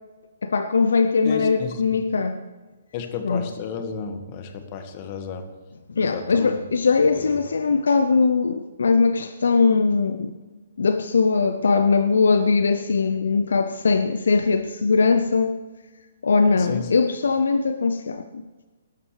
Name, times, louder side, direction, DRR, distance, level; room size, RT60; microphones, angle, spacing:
voice 1, 0.4-2.4 3.2-3.4 6.0-10.3 10.8-15.6 16.2-18.4, left 4 dB, 70° left, 11 dB, 0.6 m, -20 dB
voice 2, 1.2-2.0 2.9-5.5 6.0-6.5 7.1-7.4 16.6-16.9, left 6 dB, 35° left, 7 dB, 1.6 m, -33 dB
18.5 x 12.5 x 3.3 m, 1.3 s
figure-of-eight pair, 135°, 0 cm